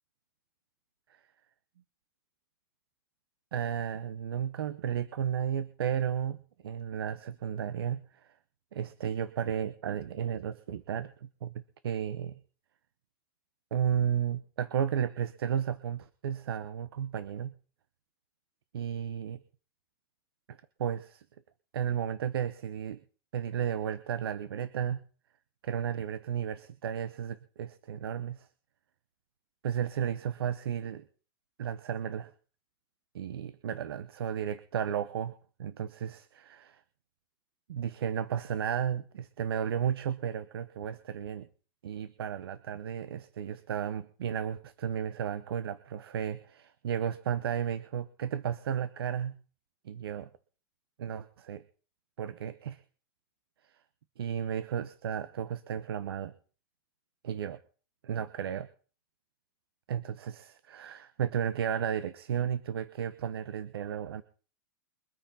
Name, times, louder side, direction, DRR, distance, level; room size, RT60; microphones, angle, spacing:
voice 1, 3.5-6.4 6.6-8.3 8.7-12.4 13.7-17.5 18.7-19.4 20.5-21.2 21.7-23.0 23.3-25.0 25.6-28.5 29.6-31.0 31.6-32.3 33.1-35.3 35.6-36.8 37.7-41.5 41.8-49.4 49.8-50.3 51.0-51.6 52.2-52.8 53.6-53.8 54.2-56.3 57.2-57.6 58.0-58.7 59.9-64.2, right 9 dB, 90° right, 14 dB, 1.1 m, -33 dB
23.5 x 9.4 x 4.3 m, 0.40 s
supercardioid pair, 175°, 12 cm